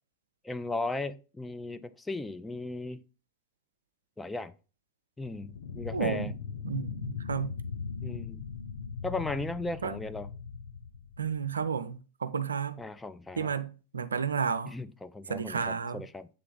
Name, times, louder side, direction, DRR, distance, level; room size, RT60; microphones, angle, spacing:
voice 1, 0.4-3.0 4.2-4.5 5.2-6.3 8.0-8.4 9.0-10.3 12.8-13.5 14.7-16.3, left 2 dB, 10° left, 0.4 m, -36 dB
sound 1, 5.3-11.8, left 6 dB, 65° left, 0.5 m, -39 dB
voice 2, 5.9-6.3 6.6-7.5 9.8-10.0 11.2-12.8 13.4-14.7 15.3-16.0, right 6 dB, 70° right, 0.4 m, -32 dB
7.7 x 3.3 x 3.8 m
figure-of-eight pair, 90°, 0 cm